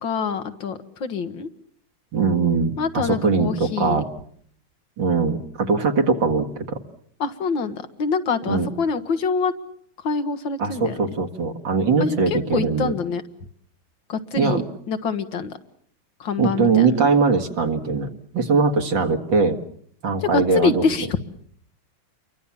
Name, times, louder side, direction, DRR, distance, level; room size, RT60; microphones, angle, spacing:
voice 1, 0.0-1.5 2.8-4.0 7.2-9.5 10.0-11.0 12.0-13.2 14.1-14.6 14.9-15.6 16.2-17.0 20.2-21.1, left 5 dB, 75° left, 9 dB, 2.2 m, -25 dB
voice 2, 2.1-4.1 5.0-6.8 8.5-8.7 10.6-12.9 14.4-14.6 16.4-19.6 20.0-20.8, right 4 dB, 70° right, 4 dB, 2.6 m, -21 dB
29.0 x 24.0 x 7.3 m, 0.63 s
omnidirectional pair, 2.1 m